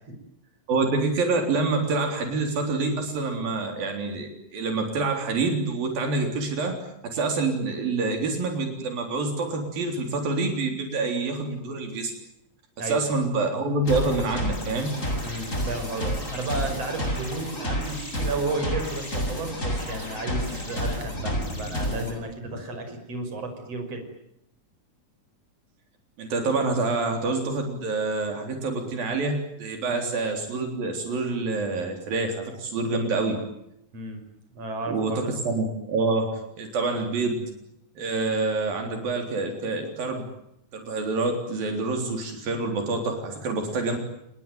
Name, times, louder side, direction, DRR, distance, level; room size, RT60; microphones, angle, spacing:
voice 1, 0.7-6.8 7.0-12.1 12.8-15.0 26.2-33.4 34.9-36.3 36.6-37.4 38.0-40.3 40.7-44.0, right 3 dB, 80° right, 4 dB, 5.5 m, -27 dB
voice 2, 12.8-13.2 15.2-24.0 29.8-30.1 33.9-34.2 34.5-35.3, right 2 dB, 45° right, 6 dB, 6.8 m, -33 dB
sound 1, 13.8-22.1, equal, 20° left, 7.6 m, -30 dB
30.0 x 20.5 x 9.4 m, 0.81 s
omnidirectional pair, 4.0 m